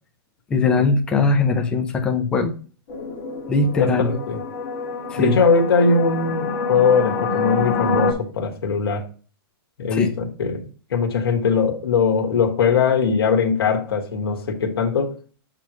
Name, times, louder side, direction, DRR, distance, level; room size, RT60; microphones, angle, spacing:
voice 1, 0.5-2.5 3.5-4.1 5.1-5.4 9.9-10.1, left 3 dB, 5° left, 0.5 m, -20 dB
sound 1, 2.9-8.1, left 4 dB, 35° left, 1.6 m, -26 dB
voice 2, 3.7-4.4 5.2-9.1 9.8-15.1, left 5 dB, 70° left, 1.6 m, -20 dB
7.4 x 3.1 x 5.0 m
hypercardioid pair, 180°, 13 cm